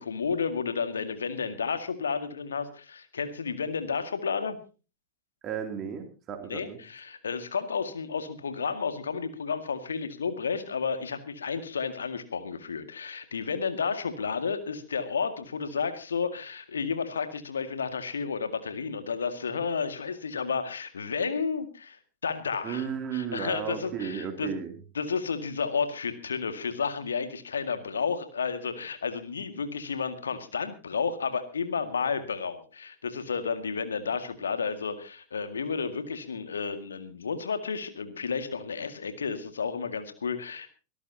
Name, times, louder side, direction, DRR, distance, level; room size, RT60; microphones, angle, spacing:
voice 1, 0.0-4.6 6.5-22.9 23.1-24.5 25.0-40.7, left 5 dB, 70° left, 9 dB, 2.0 m, -32 dB
voice 2, 5.4-6.8 22.6-24.7, right 7 dB, 30° right, 6 dB, 2.8 m, -34 dB
24.5 x 13.5 x 2.8 m, 0.33 s
figure-of-eight pair, 90°, 0 cm